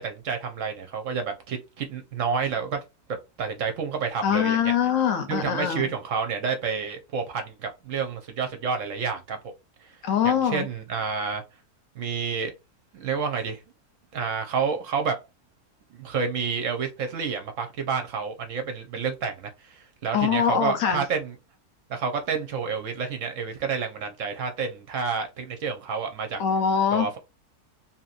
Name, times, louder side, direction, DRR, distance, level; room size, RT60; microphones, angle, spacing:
voice 1, 0.0-2.8 3.4-4.7 5.3-9.4 9.8-9.9 10.2-11.4 12.0-12.5 12.9-13.6 14.1-15.2 15.9-21.3 21.9-26.4 26.9-27.2, right 6 dB, 65° right, 0.9 m, -29 dB
voice 2, 4.2-5.9 10.0-10.7 20.1-21.0 26.4-27.1, left 8 dB, 65° left, 1.0 m, -23 dB
2.8 x 2.7 x 2.4 m
omnidirectional pair, 1.6 m